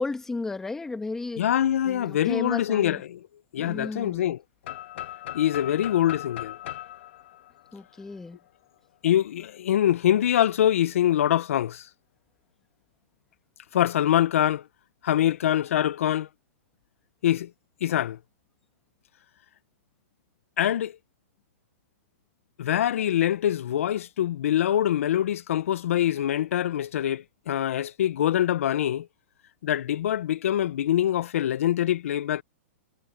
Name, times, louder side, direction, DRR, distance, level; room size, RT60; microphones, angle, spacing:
voice 1, 0.0-1.5 1.8-3.0 3.6-4.3 7.7-8.4, left 3 dB, 5° left, 1.3 m, -34 dB
voice 2, 1.4-3.2 3.5-4.4 5.3-6.6 9.0-11.9 13.7-14.6 15.0-16.3 17.2-17.5 17.8-18.2 20.6-21.0 22.6-29.1 29.6-32.4, left 11 dB, 75° left, 0.5 m, -24 dB
sound 1, 4.6-8.5, left 13 dB, 55° left, 1.2 m, -39 dB
supercardioid pair, 170°, 8 cm